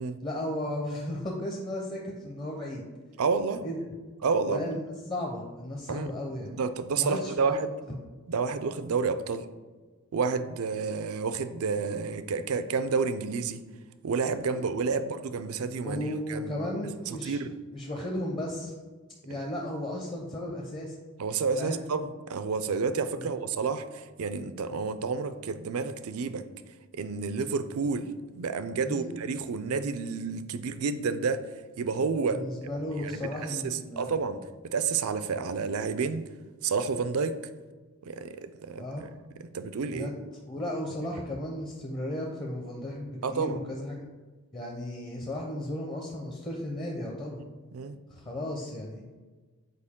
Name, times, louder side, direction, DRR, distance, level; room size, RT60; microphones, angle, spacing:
voice 1, 0.2-2.8 3.6-3.8 4.5-6.5 7.0-7.6 15.8-17.4 17.7-18.7 19.2-21.0 21.6-21.8 23.2-23.3 28.8-29.1 32.3-34.1 38.8-39.0 39.9-40.2 40.5-44.0 44.5-47.4 48.1-49.0, left 1 dB, 25° left, -1 dB, 0.7 m, -35 dB
voice 2, 3.2-3.6 4.2-4.8 5.9-6.1 6.5-7.8 8.3-9.5 10.1-13.6 14.0-16.6 17.1-17.5 19.3-19.4 21.2-26.4 26.9-28.1 28.3-31.4 31.8-32.4 33.0-34.4 34.7-36.2 36.6-37.4 38.0-39.1 39.4-40.1 43.2-43.6 47.7-48.0, right 5 dB, 70° right, 11 dB, 0.4 m, -30 dB
6.7 x 4.5 x 3.6 m, 1.3 s
head